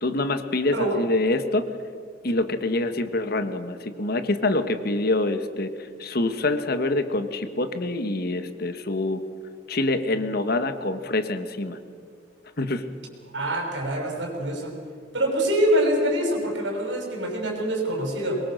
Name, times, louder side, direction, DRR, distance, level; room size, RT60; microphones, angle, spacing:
voice 1, 0.0-1.7 2.2-5.7 6.0-9.2 9.7-11.8 12.6-12.9, left 2 dB, 55° left, 10 dB, 1.3 m, -25 dB
voice 2, 13.3-14.7 15.1-18.4, right 1 dB, 75° right, 1 dB, 6.1 m, -25 dB
23.5 x 22.0 x 6.5 m, 2.3 s
head